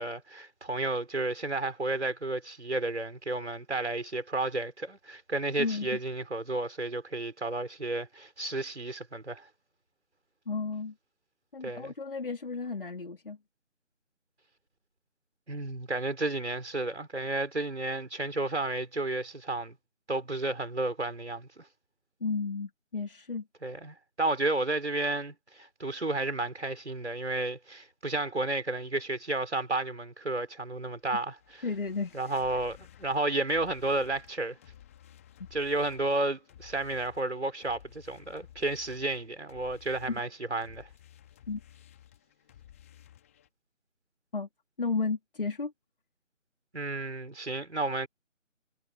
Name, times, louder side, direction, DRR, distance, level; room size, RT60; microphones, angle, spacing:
voice 1, 0.0-9.5 11.6-11.9 15.5-19.8 20.1-21.7 23.6-31.6 32.1-34.6 35.5-40.9 46.7-48.1, right 2 dB, 60° right, 5.1 m, -32 dB
voice 2, 5.6-6.0 10.5-10.9 11.5-13.4 22.2-23.4 31.6-32.2 35.4-35.5 40.1-40.2 41.5-41.6 44.3-44.5 44.8-45.7, left 4 dB, 45° left, 3.4 m, -33 dB
sound 1, 30.8-43.5, left 11 dB, 10° left, 2.8 m, -55 dB
figure-of-eight pair, 160°, 39 cm